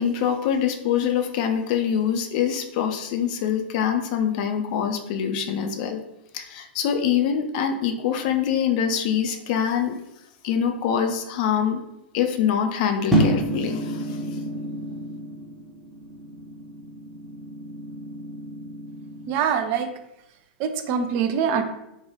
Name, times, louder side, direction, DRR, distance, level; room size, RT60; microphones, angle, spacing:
voice 1, 0.0-6.0 6.3-10.0 10.4-11.8 12.1-14.4, left 8 dB, 45° left, 5 dB, 0.4 m, -24 dB
sound 1, 13.1-19.3, right 1 dB, ahead, 0.7 m, -29 dB
voice 2, 19.3-19.9 20.6-21.6, right 7 dB, 40° right, 7 dB, 0.3 m, -24 dB
2.9 x 2.2 x 2.9 m, 0.86 s
figure-of-eight pair, 100°, 6 cm